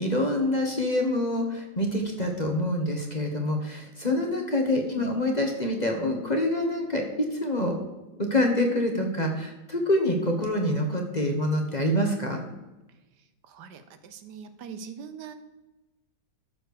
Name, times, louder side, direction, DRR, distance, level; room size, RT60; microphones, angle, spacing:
voice 1, 0.0-7.8 8.2-12.4, left 1 dB, 25° left, 2 dB, 1.2 m, -26 dB
voice 2, 13.5-15.3, right 6 dB, 70° right, 10 dB, 1.3 m, -42 dB
13.0 x 4.5 x 6.6 m, 1.1 s
omnidirectional pair, 1.9 m